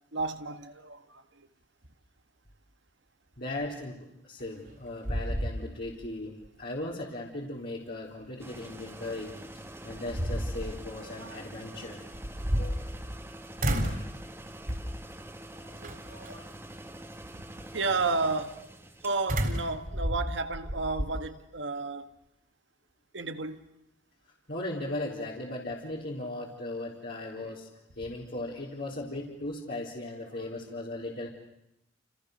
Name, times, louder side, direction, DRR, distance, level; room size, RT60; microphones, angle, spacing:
voice 1, 0.1-1.5 11.2-11.4 15.6-16.6 17.7-18.6 19.0-22.1 23.1-23.7 27.4-27.6 30.3-30.7, right 3 dB, 75° right, 1.8 m, -33 dB
voice 2, 3.4-9.4 9.8-12.0 12.6-12.9 24.5-27.7 28.0-31.3, left 2 dB, 55° left, 4.0 m, -37 dB
sound 1, 4.4-4.8 5.0-6.1 6.4-6.5 9.2-9.3 9.9-10.8 12.1-13.2 13.6-14.1 14.7-15.0 15.8-16.3 19.3-21.1, equal, 50° right, 4.3 m, -31 dB
sound 2, 8.4-19.5, right 1 dB, 15° right, 1.9 m, -46 dB
29.5 x 29.5 x 6.7 m
head